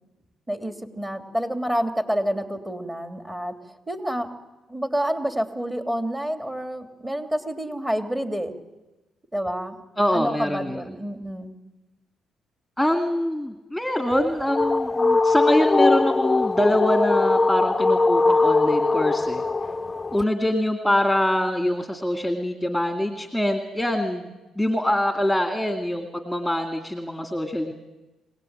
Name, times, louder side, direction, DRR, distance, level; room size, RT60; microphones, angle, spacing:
voice 1, 0.5-3.5 3.9-4.3 4.7-8.5 9.3-9.8 10.1-11.5, equal, 15° right, 7 dB, 3.0 m, -28 dB
voice 2, 10.0-10.8 12.8-19.4 20.1-27.7, left 1 dB, ahead, 5 dB, 2.2 m, -24 dB
sound 1, 14.1-20.2, left 3 dB, 20° left, 0.7 m, -21 dB
24.5 x 18.0 x 8.9 m, 1.1 s
cardioid pair, 90°, 0 cm